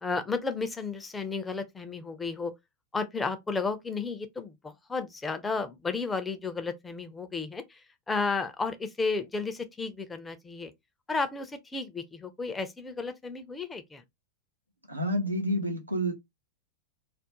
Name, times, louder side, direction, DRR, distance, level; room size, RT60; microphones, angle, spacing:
voice 1, 0.0-2.5 2.9-7.8 8.1-10.7 11.1-14.0, left 4 dB, 15° left, 0.4 m, -33 dB
voice 2, 14.9-16.1, equal, 85° right, 0.6 m, -29 dB
2.4 x 2.0 x 2.8 m
figure-of-eight pair, 90°, 0 cm